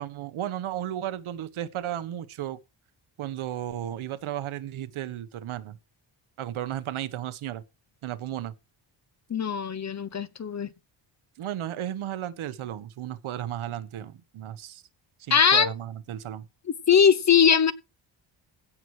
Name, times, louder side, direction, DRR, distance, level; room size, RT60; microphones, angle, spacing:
voice 1, 0.0-2.6 3.2-5.8 6.4-7.6 8.0-8.5 11.4-14.8 15.2-16.4, right 11 dB, 90° right, 1.2 m, -34 dB
voice 2, 9.3-10.7 15.3-15.7 16.9-17.7, left 7 dB, 35° left, 0.9 m, -20 dB
16.0 x 6.0 x 4.9 m
cardioid pair, 105°, 47 cm